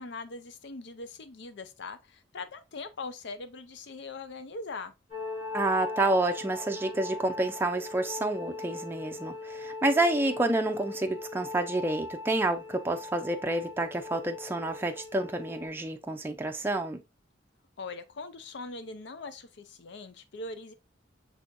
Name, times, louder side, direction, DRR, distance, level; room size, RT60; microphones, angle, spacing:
voice 1, 0.0-4.9 17.8-20.7, left 3 dB, 65° left, 0.6 m, -41 dB
sound 1, 5.1-15.7, left 3 dB, 30° left, 2.9 m, -40 dB
voice 2, 5.5-17.0, right 2 dB, 10° right, 0.4 m, -29 dB
6.1 x 3.4 x 2.5 m
head